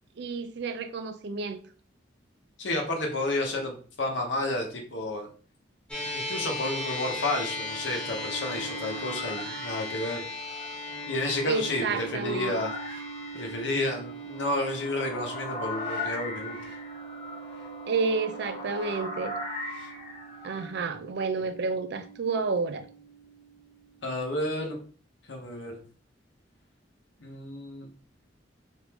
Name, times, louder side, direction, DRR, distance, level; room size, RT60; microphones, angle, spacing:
voice 1, 0.2-1.6 11.4-12.5 17.9-19.3 20.4-22.9, right 4 dB, 60° right, 0.4 m, -30 dB
voice 2, 2.6-5.3 6.1-10.2 11.1-12.7 13.3-16.6 24.0-24.8 25.3-25.8 27.2-27.9, left 2 dB, 75° left, 0.8 m, -31 dB
sound 1, 5.9-24.4, equal, 5° left, 0.9 m, -39 dB
sound 2, 7.5-20.7, left 2 dB, 30° left, 1.3 m, -40 dB
3.4 x 2.6 x 2.9 m
head